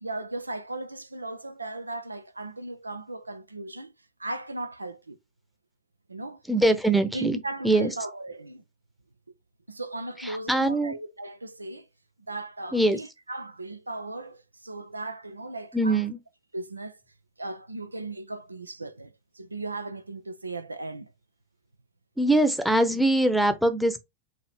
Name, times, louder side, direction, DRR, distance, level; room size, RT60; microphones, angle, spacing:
voice 1, 0.0-3.9 4.2-5.2 6.1-6.4 7.1-8.6 9.7-11.9 12.3-16.1 16.5-17.0 17.4-19.1 19.3-21.1, right 2 dB, 80° right, 0.4 m, -37 dB
voice 2, 6.5-7.9 10.2-10.9 12.7-13.0 15.7-16.2 22.2-24.0, right 1 dB, ahead, 0.8 m, -23 dB
4.8 x 2.7 x 3.3 m
figure-of-eight pair, 90°, 0 cm